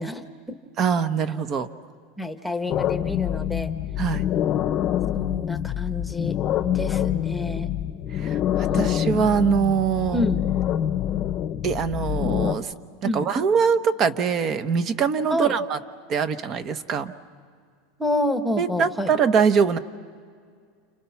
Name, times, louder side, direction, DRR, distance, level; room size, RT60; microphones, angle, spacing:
voice 1, 0.0-0.6 2.2-3.7 5.1-6.4 6.7-7.7 8.6-9.2 10.1-10.4 13.0-13.3 15.3-15.5 18.0-19.1, left 1 dB, ahead, 6 dB, 1.3 m, -28 dB
voice 2, 0.8-1.7 4.0-4.2 8.1-10.2 11.6-12.7 13.1-15.8 16.1-17.1 18.6-19.8, right 6 dB, 30° right, 12 dB, 1.0 m, -23 dB
sound 1, 2.7-12.5, left 11 dB, 35° left, 0.8 m, -26 dB
30.0 x 29.5 x 5.9 m, 2.1 s
supercardioid pair, 155°, 0 cm